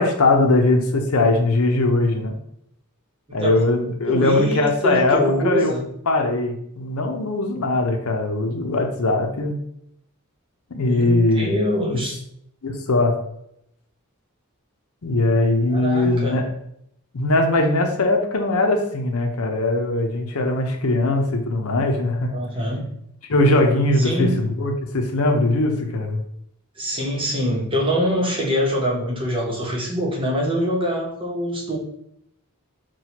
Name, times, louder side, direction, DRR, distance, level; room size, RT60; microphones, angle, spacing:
voice 1, 0.0-2.4 3.3-5.7 6.1-9.5 10.7-11.5 11.9-12.0 12.6-13.2 15.0-16.4 17.1-22.3 23.3-26.2, left 2 dB, 80° left, 3 dB, 0.7 m, -20 dB
voice 2, 4.1-5.9 10.7-12.2 15.7-16.4 22.3-22.9 24.0-24.5 26.8-31.8, equal, 25° right, -2 dB, 0.9 m, -24 dB
6.0 x 2.3 x 2.9 m, 0.74 s
head